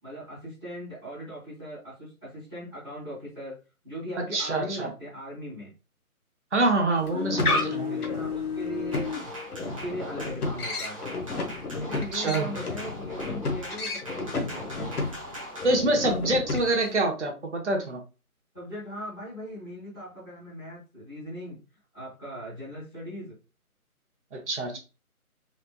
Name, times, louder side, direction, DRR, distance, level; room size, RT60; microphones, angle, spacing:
voice 1, 0.0-3.6 3.8-5.7 7.1-9.3 9.6-11.0 11.8-14.9 18.5-21.6 21.9-23.3 24.7-24.8, equal, 5° left, -18 dB, 0.9 m, -39 dB
voice 2, 4.3-4.9 6.5-8.0 11.9-12.6 15.6-18.0 24.3-24.8, right 2 dB, 50° right, 2 dB, 1.0 m, -26 dB
sound 1, 7.0-17.0, left 3 dB, 80° left, 1.2 m, -32 dB
sound 2, 8.9-15.8, right 1 dB, 25° right, 0.8 m, -41 dB
4.2 x 2.8 x 2.2 m, 0.32 s
hypercardioid pair, 170°, 44 cm